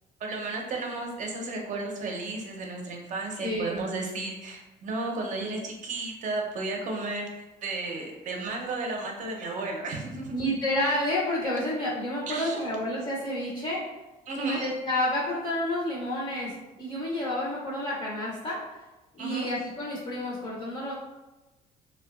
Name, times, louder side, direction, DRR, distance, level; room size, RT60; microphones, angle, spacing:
voice 1, 0.2-10.4 12.3-12.6 14.3-14.6 19.2-19.5, right 2 dB, 50° right, 1 dB, 0.6 m, -33 dB
voice 2, 3.4-3.8 10.3-13.8 14.3-18.6 19.1-20.9, left 1 dB, 30° left, -5 dB, 0.5 m, -30 dB
2.6 x 2.2 x 2.3 m, 1.1 s
cardioid pair, 110°, 17 cm